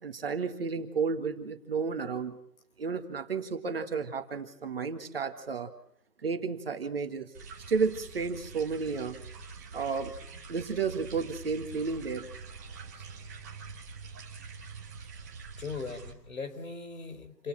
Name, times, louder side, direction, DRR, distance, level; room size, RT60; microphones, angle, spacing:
voice 1, 0.0-2.4 2.8-5.7 6.2-7.3 7.7-9.2 9.7-10.1 10.5-12.3 13.0-13.1, right 5 dB, 35° right, 7 dB, 1.9 m, -32 dB
sound 1, 7.3-16.1, right 4 dB, 10° right, 1.6 m, -45 dB
voice 2, 15.6-17.5, left 4 dB, 60° left, 9 dB, 4.5 m, -39 dB
28.5 x 17.5 x 7.5 m, 0.72 s
hypercardioid pair, 175°, 47 cm